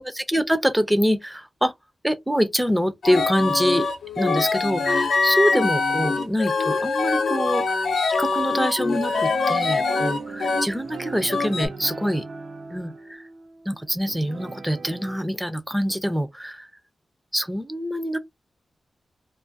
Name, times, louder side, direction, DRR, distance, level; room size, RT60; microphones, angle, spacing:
voice 1, 0.0-1.7 2.0-3.9 4.2-12.3 12.7-13.2 13.7-16.7 17.3-18.2, equal, 5° right, 0.3 m, -25 dB
sound 1, 3.0-10.7 11.3-11.7, left 4 dB, 65° left, 0.6 m, -23 dB
sound 2, 9.1-15.2, right 4 dB, 85° right, 0.7 m, -38 dB
2.5 x 2.3 x 2.5 m
wide cardioid pair, 165°, 0 cm